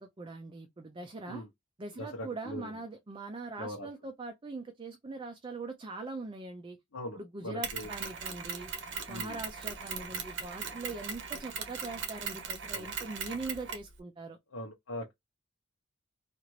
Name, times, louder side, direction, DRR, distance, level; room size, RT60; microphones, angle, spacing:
voice 1, 0.0-1.4 1.8-6.8 7.1-8.7 9.1-14.4, right 3 dB, 25° right, 0.4 m, -42 dB
voice 2, 2.0-2.7 3.6-3.9 6.9-7.9 9.1-9.4 12.7-12.9 14.5-15.1, left 1 dB, 80° left, 0.8 m, -41 dB
Mechanisms, 7.6-13.9, right 6 dB, 60° right, 0.8 m, -39 dB
2.9 x 2.4 x 3.0 m
head